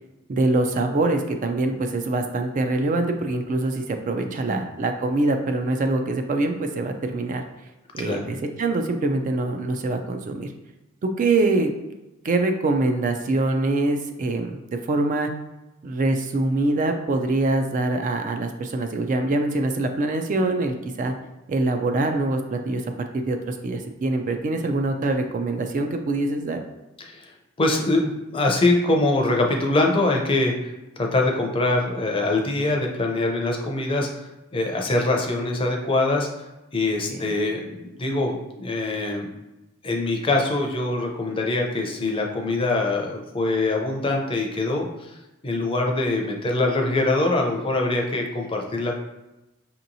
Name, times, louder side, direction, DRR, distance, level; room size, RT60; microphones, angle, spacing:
voice 1, 0.3-7.4 7.9-10.5 11.0-11.7 12.2-15.3 15.8-21.1 21.5-22.8 23.1-26.6 37.1-37.3, right 2 dB, 40° right, 5 dB, 0.3 m, -24 dB
voice 2, 27.0-36.4 36.7-39.3 39.8-45.2 45.4-49.0, left 2 dB, 25° left, 1 dB, 0.5 m, -24 dB
5.3 x 2.9 x 2.6 m, 1.0 s
head